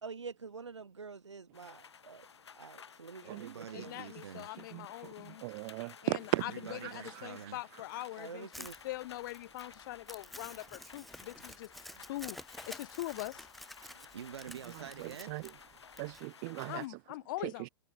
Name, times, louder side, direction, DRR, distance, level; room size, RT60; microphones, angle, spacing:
voice 1, 0.0-2.3 2.6-3.9 8.2-8.7, right 5 dB, 85° right, 0.5 m, -47 dB
sound 1, 1.5-16.9, left 7 dB, 70° left, 4.8 m, -55 dB
voice 2, 3.2-4.5 6.3-7.6 10.6-10.7 11.9-12.2 14.0-15.3, right 8 dB, 65° right, 5.1 m, -47 dB
voice 3, 3.7-5.4 6.0-11.7 12.1-12.4 12.7-13.5 16.7-17.7, left 17 dB, 50° left, 0.5 m, -42 dB
voice 4, 4.7-6.4 6.8-7.6 8.0-8.1 15.0-15.4 16.0-17.0 17.4-17.7, right 30 dB, 40° right, 0.7 m, -38 dB
Crumpling crinkling, 8.5-16.2, equal, ahead, 0.9 m, -50 dB
figure-of-eight pair, 100°, 15 cm